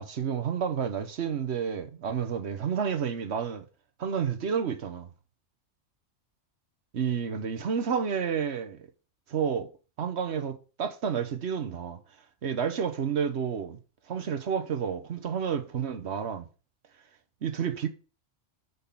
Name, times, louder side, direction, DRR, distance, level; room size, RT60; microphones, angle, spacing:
voice 1, 0.0-3.6 4.0-5.1 6.9-8.8 9.3-9.7 10.0-12.0 12.4-13.8 14.1-16.5 17.4-17.9, right 7 dB, 60° right, 1.2 m, -30 dB
6.4 x 5.4 x 7.1 m
omnidirectional pair, 1.3 m